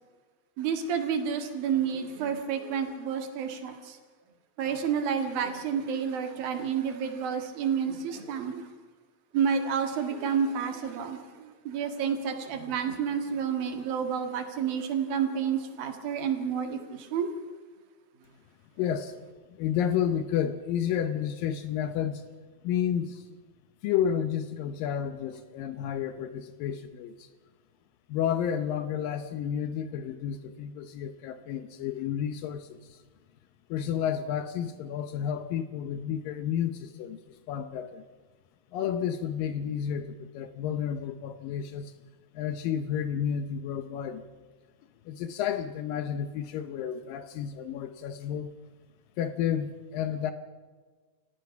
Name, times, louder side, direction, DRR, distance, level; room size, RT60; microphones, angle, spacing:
voice 1, 0.6-4.0 4.6-8.7 9.3-17.3, right 7 dB, 80° right, 6 dB, 3.6 m, -30 dB
voice 2, 18.8-19.1 19.6-22.2 22.6-23.3 23.8-27.3 28.1-33.0 33.7-38.0 38.7-41.9 42.3-44.2 45.1-48.5 49.2-50.3, left 9 dB, 75° left, 10 dB, 2.4 m, -31 dB
29.5 x 15.5 x 5.8 m, 1.4 s
omnidirectional pair, 4.1 m